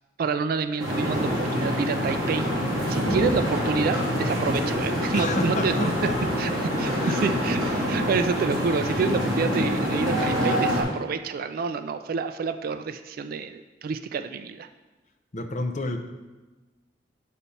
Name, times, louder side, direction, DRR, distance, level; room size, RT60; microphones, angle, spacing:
voice 1, 0.2-2.5 2.9-5.9 6.4-14.7, right 5 dB, 50° right, 10 dB, 0.3 m, -28 dB
sound 1, 0.8-10.8, equal, 20° right, 2.6 m, -26 dB
voice 2, 3.0-3.4 5.1-6.1 6.5-7.3 7.9-8.1 15.3-16.0, left 1 dB, 40° left, 4 dB, 0.7 m, -30 dB
8.4 x 4.1 x 5.5 m, 1.2 s
head